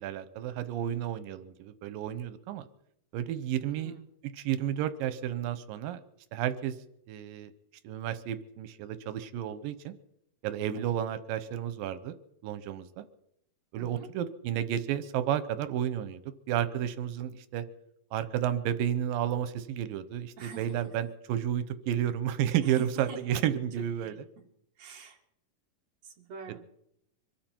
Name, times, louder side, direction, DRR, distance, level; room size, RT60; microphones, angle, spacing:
voice 1, 0.0-2.6 3.1-3.9 4.3-6.0 6.3-6.7 7.1-7.5 7.8-9.9 10.4-12.1 12.4-13.0 13.7-16.2 16.5-17.6 18.1-24.3, right 10 dB, 85° right, 12 dB, 2.6 m, -31 dB
voice 2, 3.6-4.1 10.8-10.9 13.8-14.1 20.4-20.7 22.6-23.2 24.0-24.2 24.8-25.2 26.2-26.6, right 5 dB, 55° right, 2 dB, 2.8 m, -45 dB
24.5 x 13.0 x 4.5 m, 0.77 s
omnidirectional pair, 3.9 m